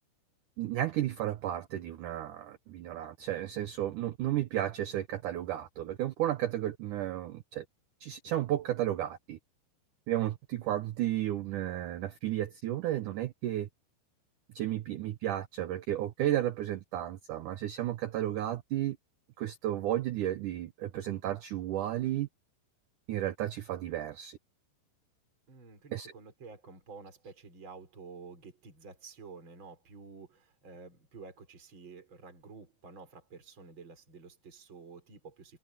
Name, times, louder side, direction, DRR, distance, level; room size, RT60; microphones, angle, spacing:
voice 1, 0.6-7.7 8.0-9.4 10.1-13.7 14.6-19.0 19.4-22.3 23.1-24.4 25.9-26.1, right 13 dB, 85° right, 1.7 m, -33 dB
voice 2, 25.5-35.6, right 4 dB, 30° right, 5.4 m, -50 dB
omnidirectional pair, 4.9 m